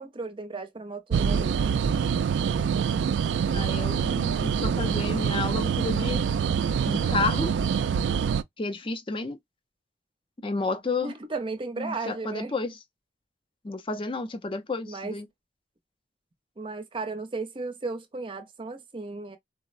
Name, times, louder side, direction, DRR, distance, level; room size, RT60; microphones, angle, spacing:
voice 1, 0.0-1.7 11.0-12.5 14.9-15.1 16.6-19.4, right 3 dB, 30° right, 0.6 m, -35 dB
sound 1, 1.1-8.4, right 7 dB, 75° right, 0.3 m, -25 dB
voice 2, 3.5-6.3 6.9-7.6 8.6-9.4 10.4-11.1 11.8-12.8 13.6-15.3, left 3 dB, 30° left, 0.5 m, -31 dB
3.8 x 2.0 x 2.4 m
head